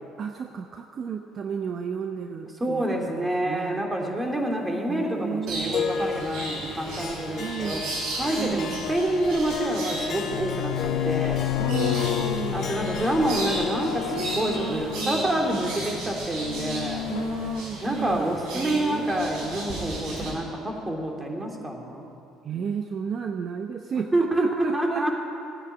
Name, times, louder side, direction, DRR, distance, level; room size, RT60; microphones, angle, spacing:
voice 1, 0.2-3.8 4.9-5.8 7.4-7.8 8.4-8.9 11.6-12.7 14.5-15.6 17.1-19.1 22.4-25.1, right 7 dB, 50° right, 5 dB, 0.9 m, -33 dB
voice 2, 2.6-7.8 8.2-11.5 12.5-17.1 17.8-22.1 24.1-25.1, right 1 dB, 20° right, 1 dB, 3.2 m, -27 dB
sound 1, 5.5-20.3, right 2 dB, 70° right, 5.2 m, -35 dB
Harp, 5.7-16.3, left 6 dB, 50° left, 1.4 m, -34 dB
sound 2, 7.1-7.2 8.9-9.6 10.0-15.5 16.3-17.6, left 17 dB, 80° left, 0.3 m, -31 dB
16.5 x 9.7 x 8.7 m, 2.5 s
hypercardioid pair, 65°, 0 cm